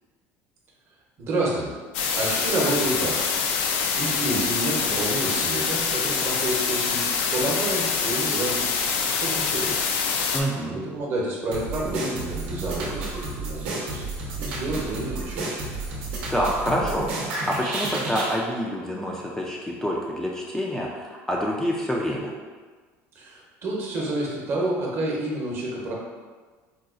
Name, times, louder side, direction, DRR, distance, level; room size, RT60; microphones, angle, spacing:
voice 1, 1.2-1.7 2.2-3.3 4.0-8.6 9.0-9.9 10.6-15.7 23.1-25.9, right 1 dB, 45° right, -3 dB, 0.8 m, -29 dB
sound 1, 1.9-10.4, left 5 dB, 85° left, 0.4 m, -25 dB
voice 2, 10.3-10.8 16.3-22.3, equal, 10° left, -3 dB, 0.3 m, -27 dB
sound 2, 11.5-18.4, right 2 dB, 90° right, 0.7 m, -31 dB
4.0 x 2.3 x 2.4 m, 1.4 s
cardioid pair, 130°, 6 cm